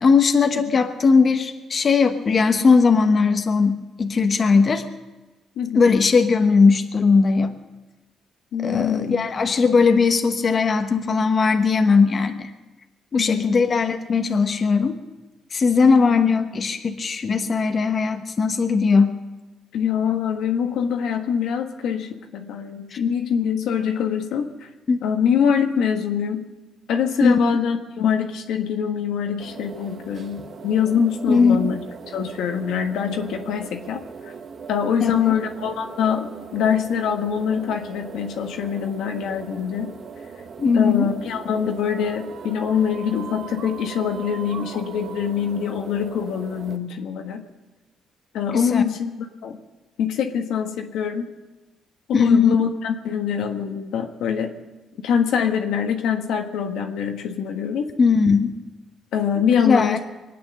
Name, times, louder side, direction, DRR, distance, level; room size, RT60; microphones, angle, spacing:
voice 1, 0.0-4.8 5.7-7.5 8.6-12.5 13.1-15.0 15.5-19.1 22.9-23.0 24.9-25.1 27.2-27.4 31.3-31.6 35.0-35.4 40.6-41.1 48.5-48.8 52.1-52.6 58.0-58.5 59.6-60.0, left 5 dB, 45° left, 6 dB, 1.1 m, -18 dB
voice 2, 8.5-9.2 13.1-13.6 15.9-16.1 19.7-24.7 25.0-26.5 26.9-31.8 32.1-34.0 34.7-39.9 40.7-47.4 48.3-49.6 50.0-51.3 52.1-54.5 55.0-57.9 59.1-60.0, left 7 dB, 85° left, 4 dB, 1.5 m, -24 dB
sound 1, 29.4-46.8, right 5 dB, 50° right, 1.2 m, -40 dB
sound 2, 41.8-47.2, right 8 dB, 80° right, 1.2 m, -42 dB
23.5 x 9.3 x 6.7 m, 1.1 s
cardioid pair, 90°, 0 cm